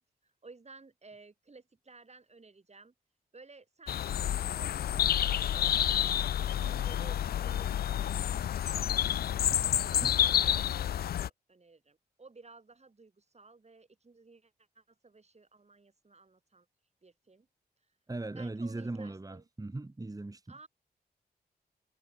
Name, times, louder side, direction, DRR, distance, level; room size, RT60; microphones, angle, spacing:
voice 1, 0.0-2.9 3.3-4.7 4.9-16.7 17.0-17.5 18.4-19.4 20.5-20.7, right 3 dB, 40° right, 7.1 m, -55 dB
sound 1, 3.9-11.3, left 11 dB, 65° left, 0.4 m, -29 dB
voice 2, 18.1-20.6, right 2 dB, 20° right, 1.6 m, -39 dB
cardioid pair, 50°, 17 cm